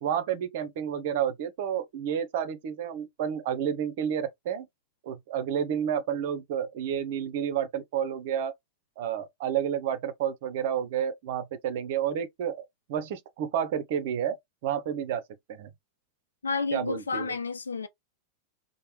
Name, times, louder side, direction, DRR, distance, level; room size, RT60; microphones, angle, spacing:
voice 1, 0.0-4.7 5.0-8.5 9.0-14.4 14.6-15.2 15.5-15.7 16.7-17.4, right 9 dB, 50° right, 0.6 m, -30 dB
voice 2, 16.4-17.9, left 4 dB, 75° left, 0.4 m, -31 dB
3.2 x 2.0 x 3.0 m
figure-of-eight pair, 90°, 0 cm